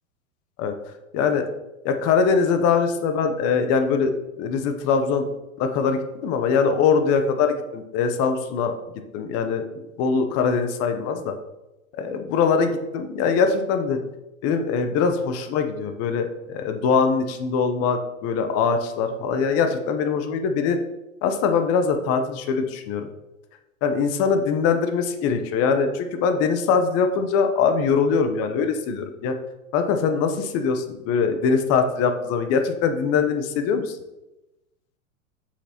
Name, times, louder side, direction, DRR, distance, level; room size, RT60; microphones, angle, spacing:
voice 1, 1.1-1.5 1.8-4.1 4.4-5.3 5.6-8.7 9.1-9.6 10.0-11.3 12.0-14.0 14.4-20.8 21.2-23.1 23.8-29.3 29.7-34.0, left 5 dB, 35° left, 7 dB, 0.8 m, -22 dB
7.9 x 6.0 x 2.9 m, 0.97 s
hypercardioid pair, 115°, 42 cm